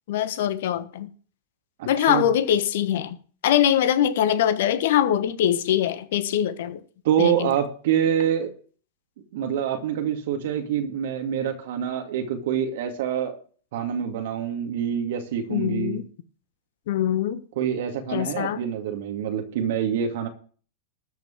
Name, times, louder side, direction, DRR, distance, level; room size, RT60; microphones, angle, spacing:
voice 1, 0.1-1.1 1.8-3.2 3.4-6.8 7.2-7.5 15.5-16.1 16.9-17.4 18.1-18.6, left 10 dB, 60° left, 1.3 m, -23 dB
voice 2, 1.8-2.2 7.0-8.5 9.3-13.4 13.7-16.0 17.6-20.3, right 9 dB, 60° right, 2.3 m, -26 dB
13.0 x 6.0 x 7.4 m
figure-of-eight pair, 95°, 0 cm